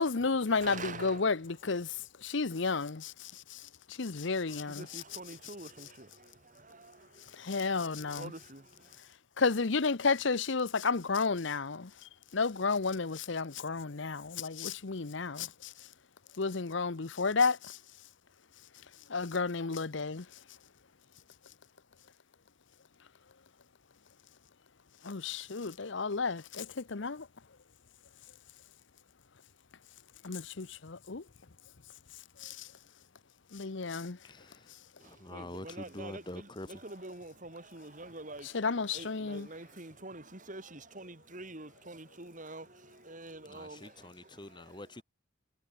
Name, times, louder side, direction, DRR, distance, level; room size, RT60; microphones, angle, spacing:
voice 1, 0.0-1.9 2.2-3.6 4.0-5.0 7.4-8.3 9.4-11.9 12.3-15.7 16.4-17.8 19.1-20.2 25.0-27.3 30.2-31.2 32.4-32.7 33.5-34.2 38.5-39.5, left 4 dB, 60° left, 0.8 m, -32 dB
voice 2, 0.6-1.3 1.8-2.1 4.5-9.0 35.0-44.8, right 2 dB, 40° right, 3.6 m, -47 dB
voice 3, 34.2-36.8 43.4-45.0, left 1 dB, 20° left, 1.6 m, -46 dB
head